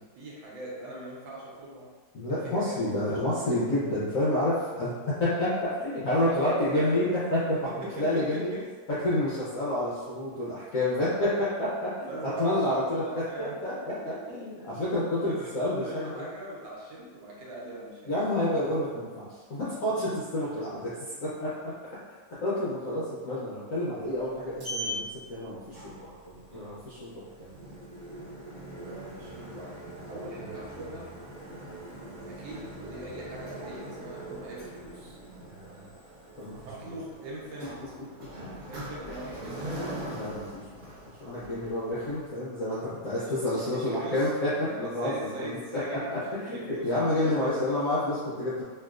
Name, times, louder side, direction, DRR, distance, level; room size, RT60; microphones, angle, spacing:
voice 1, 0.2-1.9 2.3-3.7 6.2-7.1 7.7-8.6 12.0-14.3 14.6-14.7 15.2-18.2 28.8-31.1 32.3-35.2 36.6-37.7 38.7-39.8 43.1-44.3 44.6-47.5, right 1 dB, 75° right, -4 dB, 1.4 m, -41 dB
voice 2, 2.1-4.9 5.2-7.6 8.0-8.5 9.0-12.1 12.4-13.0 13.4-16.3 18.1-20.9 21.2-21.5 22.4-25.0 25.3-27.5 30.4-30.5 35.4-35.9 36.4-36.6 36.9-37.0 40.1-40.9 41.2-48.6, left 1 dB, 70° left, -9 dB, 0.8 m, -29 dB
Sliding door, 24.0-42.3, right 1 dB, 55° right, 1.2 m, -42 dB
3.2 x 2.8 x 2.3 m, 1.4 s
omnidirectional pair, 2.2 m